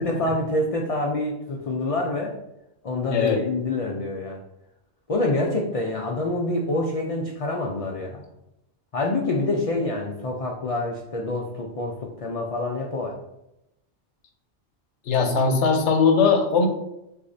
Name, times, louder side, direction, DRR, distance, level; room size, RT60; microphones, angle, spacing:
voice 1, 0.0-2.3 2.8-4.4 5.1-8.2 8.9-13.2, left 2 dB, 50° left, 0 dB, 0.4 m, -26 dB
voice 2, 3.1-3.4 15.1-16.7, left 5 dB, 80° left, 4 dB, 1.0 m, -20 dB
6.5 x 2.7 x 2.6 m, 0.87 s
omnidirectional pair, 1.2 m